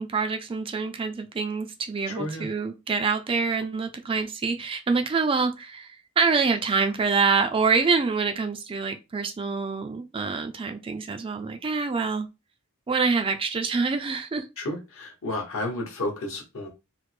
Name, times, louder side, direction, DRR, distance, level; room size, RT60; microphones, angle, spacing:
voice 1, 0.0-12.3 12.9-14.5, right 4 dB, 25° right, 0.3 m, -26 dB
voice 2, 2.1-2.5 14.6-16.7, left 1 dB, 65° left, 1.1 m, -32 dB
3.3 x 2.1 x 3.1 m
head